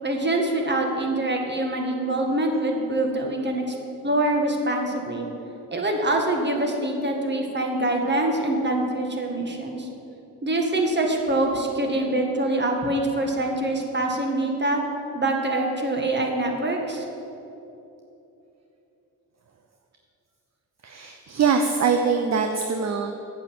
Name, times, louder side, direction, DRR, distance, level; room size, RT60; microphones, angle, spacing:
voice 1, 0.0-3.8 4.0-5.3 5.7-9.9 10.4-14.8 15.1-17.1, right 1 dB, 30° right, 2 dB, 1.9 m, -24 dB
voice 2, 20.8-23.1, right 5 dB, 50° right, 5 dB, 0.8 m, -23 dB
8.8 x 7.9 x 7.7 m, 3.0 s
cardioid pair, 75°, 36 cm